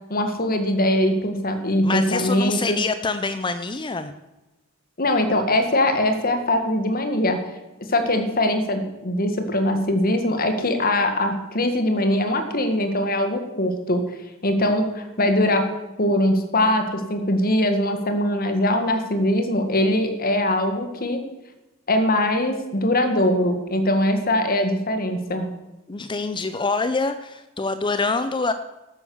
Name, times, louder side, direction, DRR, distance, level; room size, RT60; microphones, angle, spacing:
voice 1, 0.1-2.8 5.0-7.4 7.9-14.0 14.4-15.7 16.0-21.2 21.9-25.5, left 1 dB, 45° left, 7 dB, 1.8 m, -22 dB
voice 2, 1.8-4.1 25.9-28.5, left 3 dB, 25° left, 11 dB, 0.5 m, -25 dB
12.5 x 9.4 x 7.1 m, 1.0 s
head